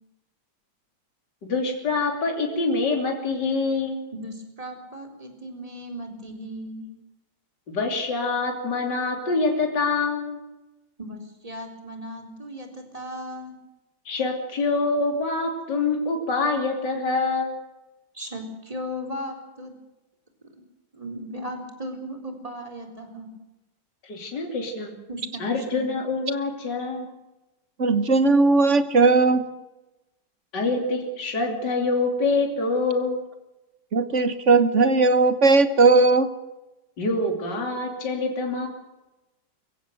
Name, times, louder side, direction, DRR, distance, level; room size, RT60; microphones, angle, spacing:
voice 1, 1.5-4.0 7.7-10.4 14.1-17.6 24.0-24.9 25.4-27.1 30.5-33.2 37.0-38.7, left 3 dB, 60° left, 2 dB, 3.6 m, -25 dB
voice 2, 4.1-6.9 11.0-13.6 18.1-19.7 20.5-20.6 20.9-23.3 25.1-25.9, equal, 15° right, 4 dB, 4.1 m, -36 dB
voice 3, 27.8-29.5 33.9-36.3, right 3 dB, 40° right, 12 dB, 1.4 m, -18 dB
23.0 x 16.0 x 7.9 m, 1.0 s
omnidirectional pair, 2.1 m